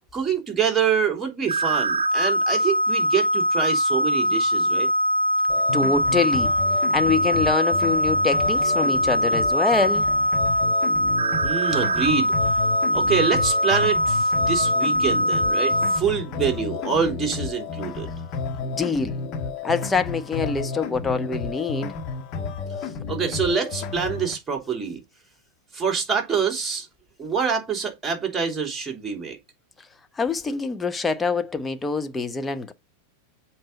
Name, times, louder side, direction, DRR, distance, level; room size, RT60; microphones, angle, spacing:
voice 1, 0.1-4.9 11.4-12.3 12.9-18.1 23.1-25.0 25.7-26.9 27.2-29.4, right 6 dB, 15° right, 3.2 m, -26 dB
sound 1, 1.5-16.0, equal, 80° right, 0.7 m, -22 dB
sound 2, 5.5-24.3, left 5 dB, 35° left, 1.5 m, -32 dB
voice 2, 5.7-6.5 6.9-10.1 18.6-19.2 19.6-21.9 30.2-32.7, left 4 dB, 15° left, 1.0 m, -25 dB
7.8 x 4.3 x 5.1 m
figure-of-eight pair, 90°, 0 cm